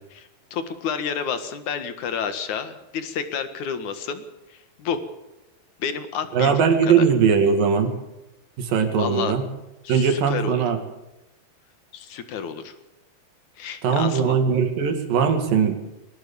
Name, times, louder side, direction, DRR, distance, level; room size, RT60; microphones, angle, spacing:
voice 1, 0.1-4.2 4.5-5.0 5.8-7.1 8.9-9.3 9.8-10.6 11.9-12.7 13.6-14.4, left 7 dB, 55° left, 10 dB, 2.8 m, -30 dB
voice 2, 6.3-7.9 8.6-9.5 9.9-10.8 13.8-15.8, right 6 dB, 60° right, 7 dB, 3.8 m, -20 dB
22.5 x 18.5 x 7.1 m, 0.95 s
omnidirectional pair, 4.6 m